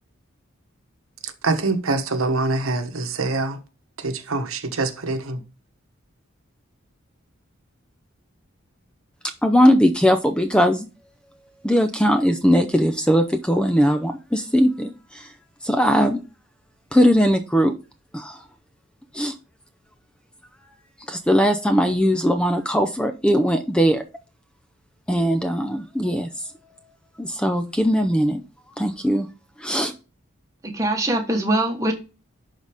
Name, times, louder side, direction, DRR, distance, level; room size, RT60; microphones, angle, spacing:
voice 1, 1.2-3.6 4.0-5.2, right 3 dB, 85° right, 1.1 m, -24 dB
voice 2, 9.4-10.9 11.6-15.3 15.6-16.2 16.9-17.7 18.1-18.4 19.1-19.3 21.1-24.0 25.1-26.3 27.2-28.4 28.8-29.3 29.6-29.9, equal, 5° left, 0.5 m, -19 dB
voice 3, 30.6-31.9, right 1 dB, 15° right, 1.2 m, -22 dB
11.0 x 4.1 x 3.5 m
head